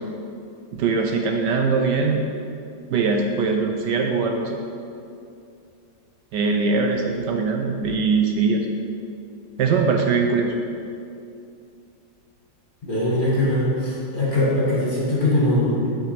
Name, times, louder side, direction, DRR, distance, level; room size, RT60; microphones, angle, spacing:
voice 1, 0.7-2.3 2.9-4.6 6.3-8.7 9.6-10.5, right 4 dB, 75° right, 3 dB, 1.2 m, -21 dB
voice 2, 12.9-15.9, left 1 dB, 25° left, -7 dB, 2.0 m, -21 dB
8.4 x 5.0 x 5.8 m, 2.5 s
omnidirectional pair, 2.0 m